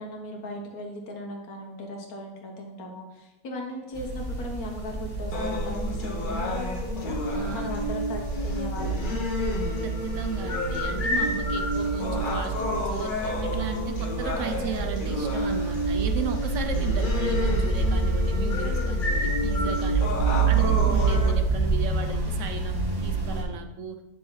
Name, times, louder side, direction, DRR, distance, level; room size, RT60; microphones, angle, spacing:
voice 1, 0.0-7.2 7.5-9.3 20.2-20.8, left 1 dB, 75° left, 2 dB, 1.7 m, -38 dB
sound 1, 3.9-23.4, right 3 dB, 15° right, 1.2 m, -28 dB
sound 2, 5.3-21.3, left 1 dB, 40° left, 1.0 m, -30 dB
voice 2, 7.3-7.7 9.8-20.2 20.5-22.8 23.0-24.0, right 6 dB, 65° right, 6 dB, 1.0 m, -35 dB
9.6 x 6.3 x 3.2 m, 0.97 s
omnidirectional pair, 1.6 m